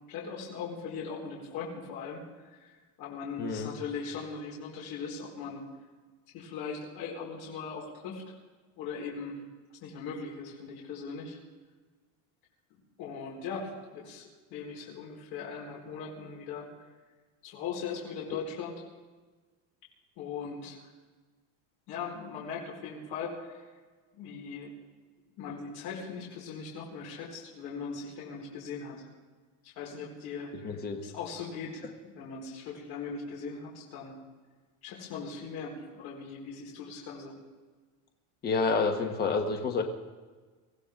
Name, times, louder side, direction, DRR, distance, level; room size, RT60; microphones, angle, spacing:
voice 1, 0.1-5.6 6.3-8.2 8.8-9.4 9.8-11.4 13.0-16.7 17.4-18.8 20.2-20.8 21.9-23.6 24.1-24.7 25.4-29.1 29.6-31.8 32.1-34.1 34.8-37.3, left 5 dB, 60° left, -3 dB, 4.6 m, -39 dB
voice 2, 3.4-3.7 30.6-31.0 38.4-39.8, left 4 dB, 20° left, 4 dB, 1.2 m, -28 dB
23.5 x 16.0 x 3.7 m, 1.4 s
cardioid pair, 170°, 42 cm